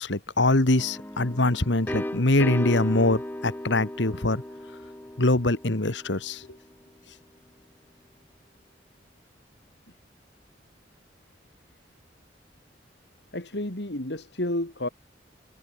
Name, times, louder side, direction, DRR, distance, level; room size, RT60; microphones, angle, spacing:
voice 1, 0.0-4.4 5.2-6.5, left 2 dB, 80° left, 1.8 m, -23 dB
sound 1, 0.8-6.5, left 1 dB, 10° left, 0.8 m, -36 dB
voice 2, 13.3-14.9, left 1 dB, 65° left, 3.3 m, -31 dB
head